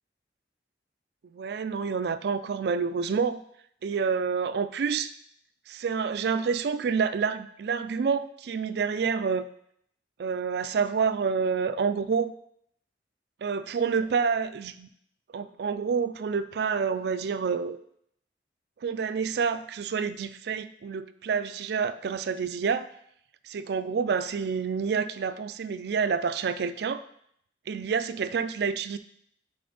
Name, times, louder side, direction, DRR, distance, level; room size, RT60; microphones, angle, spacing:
voice 1, 1.3-3.4 3.8-5.1 5.7-9.5 10.2-12.3 13.4-14.9 15.3-17.8 18.8-22.9 23.4-27.0 27.7-29.0, right 6 dB, 60° right, 13 dB, 0.3 m, -28 dB
6.7 x 4.3 x 3.9 m, 0.70 s
head